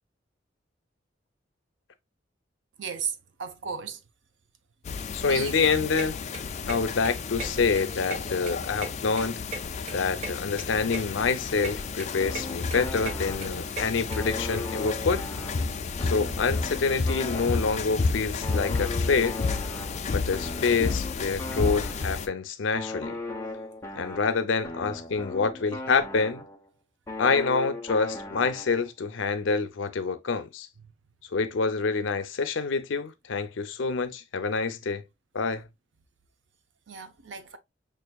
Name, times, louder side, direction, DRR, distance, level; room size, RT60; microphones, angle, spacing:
voice 1, 2.8-3.1 3.4-4.0 5.3-5.5 36.9-37.6, right 6 dB, 70° right, 0.6 m, -34 dB
sound 1, 4.8-22.3, left 4 dB, 40° left, 0.4 m, -32 dB
voice 2, 5.1-6.2 6.7-9.4 9.9-15.2 16.0-19.4 20.1-23.2 24.0-26.5 27.2-30.7 31.3-35.0 35.3-35.7, left 4 dB, 85° left, 0.6 m, -27 dB
sound 2, 5.6-14.2, right 2 dB, 40° right, 1.2 m, -39 dB
sound 3, 12.2-13.7 14.1-18.0 18.4-22.3 22.7-26.7 27.1-28.9, left 2 dB, 15° left, 0.7 m, -38 dB
5.7 x 2.5 x 2.3 m
head